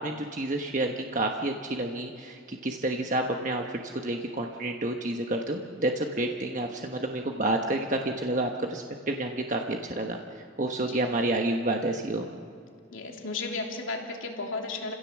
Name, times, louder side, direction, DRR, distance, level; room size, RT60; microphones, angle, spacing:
voice 1, 0.0-3.6 4.0-10.2 10.6-12.3, right 1 dB, 40° right, 2 dB, 1.2 m, -29 dB
voice 2, 12.9-14.9, left 3 dB, 85° left, 1 dB, 3.0 m, -34 dB
29.5 x 16.5 x 7.3 m, 2.2 s
head